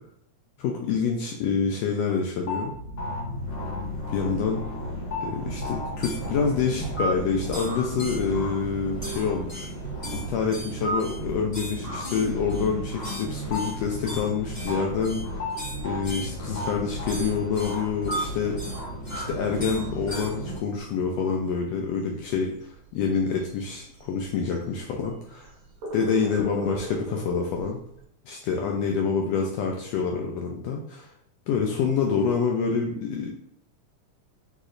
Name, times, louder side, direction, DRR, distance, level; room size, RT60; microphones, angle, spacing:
voice 1, 0.6-2.7 4.1-4.6 5.2-9.7 10.1-15.5 15.8-18.8 19.1-25.5 25.9-27.8 28.3-31.1 31.5-33.3, left 5 dB, 85° left, 1 dB, 1.4 m, -27 dB
Dial Error, 2.4-20.6, equal, 30° left, 1.1 m, -33 dB
sound 1, 19.2-28.0, right 1 dB, 70° right, 1.8 m, -42 dB
6.4 x 3.1 x 2.5 m, 0.67 s
omnidirectional pair, 3.5 m